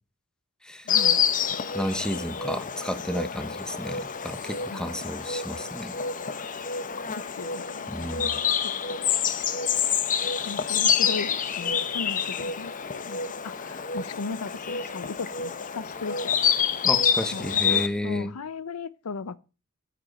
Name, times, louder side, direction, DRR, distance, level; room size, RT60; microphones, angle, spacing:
voice 1, 0.8-1.2 4.7-4.8 7.1-9.1 10.4-16.6 17.3-19.4, left 4 dB, 85° left, 0.6 m, -37 dB
Insect, 0.9-17.9, left 7 dB, 40° left, 0.8 m, -27 dB
voice 2, 1.7-5.9 7.9-8.4 16.8-18.3, equal, 5° left, 1.0 m, -32 dB
8.9 x 7.6 x 6.4 m
head